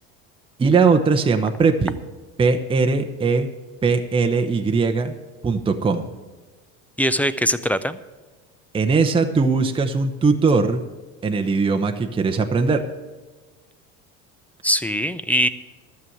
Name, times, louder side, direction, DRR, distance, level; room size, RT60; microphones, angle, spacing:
voice 1, 0.6-1.9 2.4-3.5 3.8-5.2 5.4-6.0 8.7-10.8 11.2-12.8, right 4 dB, 15° right, 5 dB, 0.8 m, -20 dB
voice 2, 7.0-8.0 14.6-15.5, equal, 5° left, 13 dB, 0.4 m, -21 dB
12.5 x 7.0 x 7.8 m, 1.3 s
supercardioid pair, 115°, 33 cm